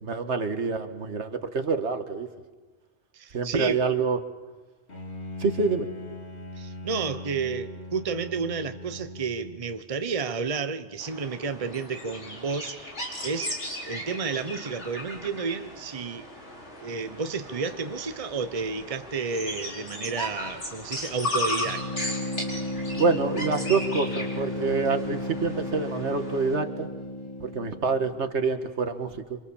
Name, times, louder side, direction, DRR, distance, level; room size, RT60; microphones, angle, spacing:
voice 1, 0.0-2.3 3.3-4.2 5.4-5.9 23.0-26.9 27.4-29.4, right 4 dB, 80° right, 1.8 m, -26 dB
voice 2, 3.1-3.9 6.5-12.9 13.2-16.3 16.8-21.9, right 5 dB, 35° right, 1.0 m, -31 dB
Bowed string instrument, 4.9-9.8, left 2 dB, 70° left, 2.7 m, -40 dB
sound 1, 11.0-26.6, left 1 dB, 90° left, 5.2 m, -36 dB
sound 2, 21.7-28.3, left 1 dB, 25° left, 1.8 m, -33 dB
27.5 x 26.0 x 7.1 m
omnidirectional pair, 1.2 m